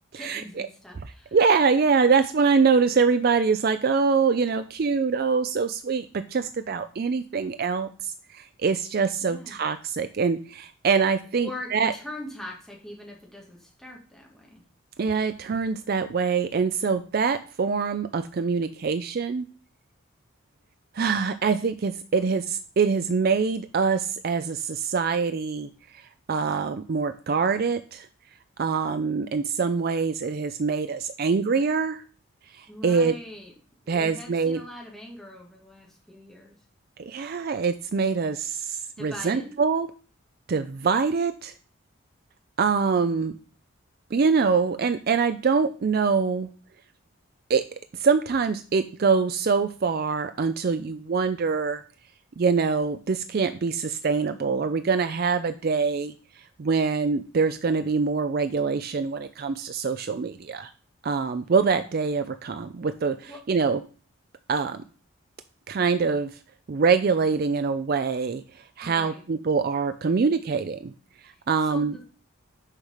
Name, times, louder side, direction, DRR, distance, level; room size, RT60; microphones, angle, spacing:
voice 1, 0.1-1.4 9.2-9.6 11.4-14.6 22.2-22.3 32.7-33.5 33.8-36.6 39.0-39.5 63.3-63.4 68.8-69.2 71.3-72.1, left 1 dB, ahead, -2 dB, 1.9 m, -42 dB
voice 2, 1.3-11.9 15.0-19.5 20.9-28.1 28.6-32.0 32.5-33.1 33.9-34.6 37.0-39.9 40.5-41.5 42.6-43.4 44.1-46.5 47.5-47.6 47.9-51.8 52.4-60.7 61.0-63.8 64.5-64.8 65.7-66.3 66.7-68.4 68.8-70.9 71.2-71.9, right 5 dB, 45° right, 10 dB, 0.4 m, -24 dB
6.5 x 4.8 x 5.6 m, 0.39 s
head